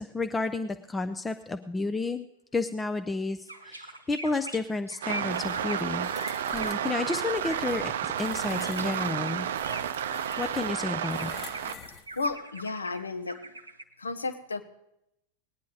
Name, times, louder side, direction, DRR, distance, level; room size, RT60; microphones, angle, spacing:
voice 1, 0.0-2.3 2.5-6.1 6.5-9.5 10.4-11.3, left 3 dB, 10° left, 8 dB, 0.5 m, -31 dB
sound 1, 3.5-7.8 8.6-10.7 11.0-13.8, right 2 dB, 85° right, 0.8 m, -41 dB
sound 2, 5.0-11.8, right 9 dB, 60° right, 0.5 m, -31 dB
sound 3, 5.3-12.3, left 6 dB, 35° left, 0.9 m, -47 dB
voice 2, 12.2-13.4 14.0-14.6, left 3 dB, 75° left, 10 dB, 0.9 m, -32 dB
19.5 x 9.5 x 4.0 m, 0.84 s
figure-of-eight pair, 90°, 0 cm